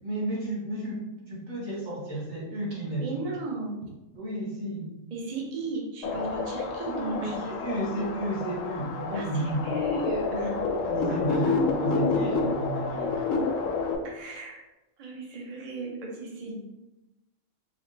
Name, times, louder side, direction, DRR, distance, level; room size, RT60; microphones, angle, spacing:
voice 1, 0.0-3.1 4.1-4.9 6.9-9.6 10.3-10.6 10.8-13.3, right 1 dB, 75° right, -5 dB, 1.8 m, -32 dB
voice 2, 3.0-3.8 5.1-7.5 9.1-10.6 11.1-11.5 14.0-14.6 15.0-16.7, right 2 dB, 40° right, -2 dB, 0.6 m, -36 dB
sound 1, 6.0-14.0, left 4 dB, 75° left, 0.9 m, -29 dB
4.8 x 2.1 x 3.2 m, 0.97 s
omnidirectional pair, 1.4 m